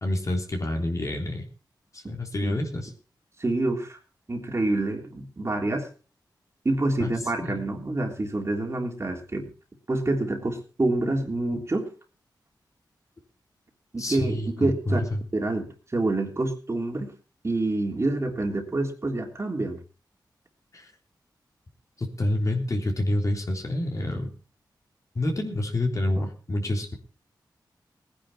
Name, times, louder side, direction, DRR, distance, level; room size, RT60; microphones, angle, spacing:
voice 1, 0.0-1.5 1.9-2.9 7.0-7.1 7.4-7.6 14.0-15.2 20.7-20.9 22.0-24.3 25.2-26.9, left 1 dB, 45° left, 2 dB, 3.5 m, -28 dB
voice 2, 3.4-4.0 4.3-5.9 6.6-9.5 9.9-11.9 13.9-15.0 15.3-17.1 17.4-19.8, right 2 dB, 35° right, 2 dB, 3.3 m, -27 dB
19.0 x 10.0 x 4.3 m, 0.36 s
wide cardioid pair, 80°, 8 cm